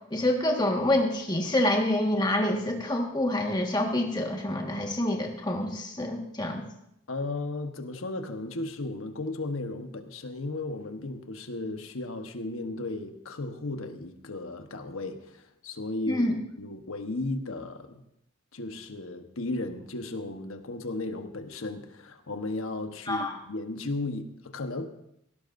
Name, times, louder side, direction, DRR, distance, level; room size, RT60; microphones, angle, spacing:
voice 1, 0.1-6.6 16.1-16.4 23.1-23.3, left 1 dB, 20° left, 1 dB, 1.7 m, -27 dB
voice 2, 7.1-16.2 16.6-18.0 18.5-24.9, left 2 dB, 75° left, 6 dB, 1.2 m, -35 dB
17.5 x 17.0 x 2.7 m, 0.78 s
head